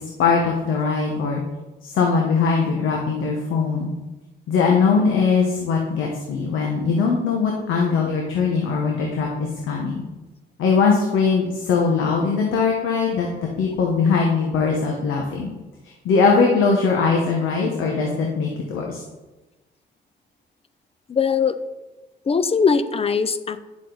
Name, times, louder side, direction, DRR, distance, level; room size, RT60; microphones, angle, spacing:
voice 1, 0.0-1.4 1.8-3.9 4.5-9.3 9.7-10.0 10.6-13.3 13.6-15.5 15.8-19.0, left 5 dB, 85° left, 0 dB, 1.4 m, -21 dB
voice 2, 21.1-21.6 22.3-23.6, left 5 dB, 30° left, 13 dB, 0.6 m, -20 dB
9.8 x 7.4 x 4.0 m, 1.1 s
cardioid pair, 90°, 20 cm